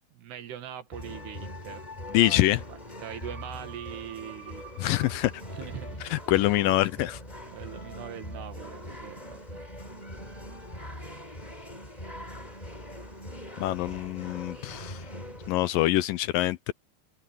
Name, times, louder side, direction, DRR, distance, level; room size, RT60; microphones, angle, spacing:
voice 1, 0.2-1.9 2.1-4.7 5.5-6.0 6.3-6.5 7.5-9.6, right 10 dB, 90° right, 4.1 m, -42 dB
sound 1, 0.9-15.5, equal, 10° left, 6.1 m, -42 dB
voice 2, 2.1-2.6 4.8-5.3 6.1-7.2 13.6-15.0 15.5-16.7, left 16 dB, 80° left, 2.1 m, -25 dB
omnidirectional pair, 4.6 m